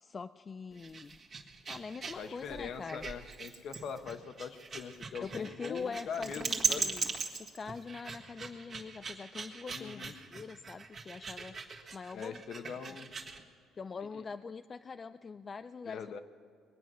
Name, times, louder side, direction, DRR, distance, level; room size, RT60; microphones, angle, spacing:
voice 1, 0.0-1.2 1.7-3.1 5.2-7.0 7.4-12.4 12.9-13.0 13.8-16.0, left 5 dB, 25° left, 11 dB, 0.3 m, -43 dB
sound 1, 0.7-13.4, right 5 dB, 35° right, 1.8 m, -39 dB
voice 2, 2.2-7.0 9.7-10.1 12.1-13.3 14.1-14.2 15.8-16.2, left 6 dB, 55° left, 9 dB, 1.0 m, -42 dB
22.5 x 9.2 x 6.2 m, 2.4 s
cardioid pair, 130°, 0 cm